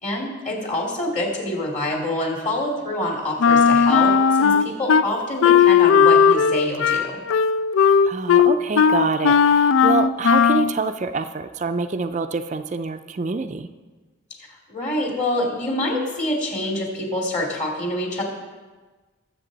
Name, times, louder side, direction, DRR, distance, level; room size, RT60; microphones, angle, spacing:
voice 1, 0.0-7.2 14.5-18.2, left 1 dB, 35° left, -1 dB, 2.5 m, -26 dB
Wind instrument woodwind instrument, 3.4-5.1 5.4-10.7, left 6 dB, 75° left, 0.4 m, -16 dB
voice 2, 8.0-13.7, right 4 dB, 35° right, 8 dB, 0.4 m, -26 dB
20.5 x 7.5 x 4.0 m, 1.3 s
head